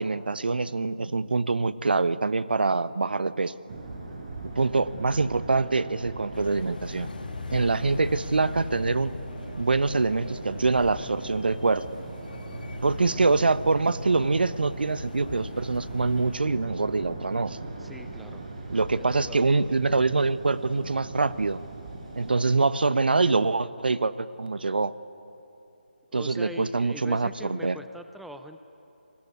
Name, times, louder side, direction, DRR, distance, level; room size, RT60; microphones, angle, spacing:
voice 1, 0.0-3.5 4.6-7.1 7.5-9.1 9.6-11.8 12.8-17.6 18.7-21.6 22.2-24.9 26.1-27.8, right 3 dB, 65° right, 15 dB, 1.0 m, -25 dB
sound 1, 3.7-22.3, right 2 dB, 40° right, 6.2 m, -40 dB
sound 2, 6.3-16.4, left 4 dB, 60° left, 1.3 m, -41 dB
sound 3, 9.0-19.1, right 1 dB, 20° right, 3.5 m, -55 dB
voice 2, 17.8-18.4 18.9-19.4 26.1-28.6, right 1 dB, ahead, 8 dB, 0.6 m, -42 dB
29.5 x 21.0 x 9.6 m, 2.8 s
figure-of-eight pair, 155°, 6 cm